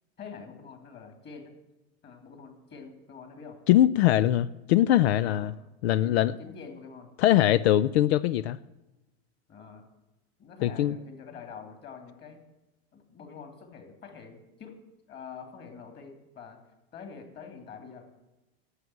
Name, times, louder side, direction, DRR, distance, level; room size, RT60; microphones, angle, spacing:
voice 1, 0.2-1.5 2.0-3.6 5.2-5.6 6.0-7.1 9.5-9.8 10.4-12.4 12.9-14.8 15.1-16.6 16.9-18.0, left 5 dB, 35° left, 5 dB, 3.0 m, -46 dB
voice 2, 3.7-5.5 5.8-6.3 7.2-8.6 10.6-11.0, left 13 dB, 85° left, 17 dB, 0.5 m, -22 dB
11.5 x 8.1 x 9.2 m, 1.0 s
supercardioid pair, 125°, 31 cm